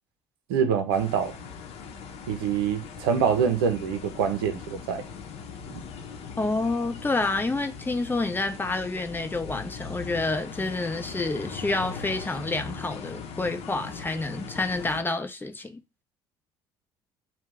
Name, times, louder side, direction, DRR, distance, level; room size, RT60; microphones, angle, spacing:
voice 1, 0.5-1.3 2.3-5.0 5.7-5.8, right 7 dB, 80° right, 0.6 m, -25 dB
sound 1, 0.9-15.0, left 6 dB, 55° left, 0.9 m, -40 dB
voice 2, 6.4-15.8, left 2 dB, 15° left, 0.8 m, -28 dB
2.8 x 2.3 x 3.6 m
hypercardioid pair, 55°, 12 cm